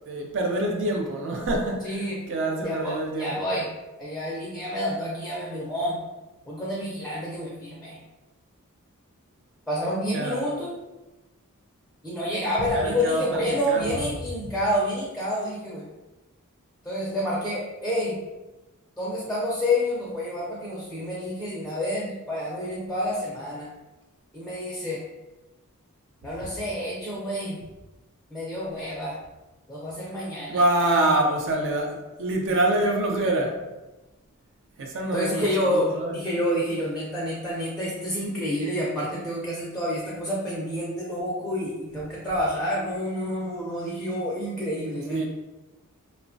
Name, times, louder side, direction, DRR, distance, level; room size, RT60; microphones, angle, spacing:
voice 1, 0.1-3.4 10.1-10.4 12.7-13.4 13.7-14.1 14.4-14.5 30.5-33.6 34.8-36.1 45.1-45.3, right 1 dB, 60° right, 1 dB, 0.4 m, -26 dB
voice 2, 1.8-2.2 2.6-3.7 4.0-6.0 6.5-8.0 9.7-10.8 12.0-15.9 16.8-18.2 19.0-23.7 24.3-25.0 26.2-27.6 28.3-29.2 29.7-30.6 35.1-45.3, left 1 dB, ahead, -5 dB, 0.4 m, -28 dB
2.9 x 2.1 x 2.5 m, 1.1 s
head